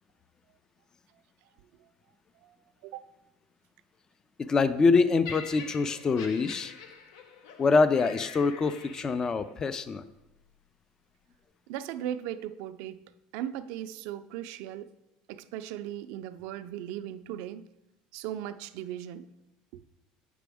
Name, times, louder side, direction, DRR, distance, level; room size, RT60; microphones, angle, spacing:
voice 1, 4.4-6.7 7.6-10.0, left 4 dB, 25° left, 0.3 m, -25 dB
Laughter, 5.2-9.5 10.3-10.5, left 5 dB, 85° left, 0.7 m, -45 dB
voice 2, 11.7-13.0 13.3-14.9 15.3-17.6 18.1-19.3 19.7-19.8, right 11 dB, 70° right, 0.4 m, -37 dB
7.6 x 6.1 x 3.4 m
supercardioid pair, 120°, 3 cm